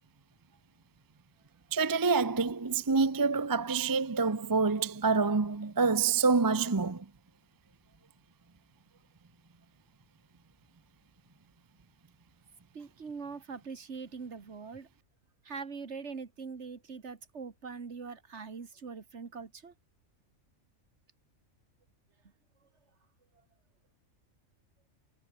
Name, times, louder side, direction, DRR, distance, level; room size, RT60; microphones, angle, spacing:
voice 1, 1.7-7.0, right 4 dB, 20° right, 0.6 m, -27 dB
voice 2, 12.7-14.9 15.4-19.7, right 5 dB, 55° right, 2.0 m, -42 dB
omnidirectional pair, 1.4 m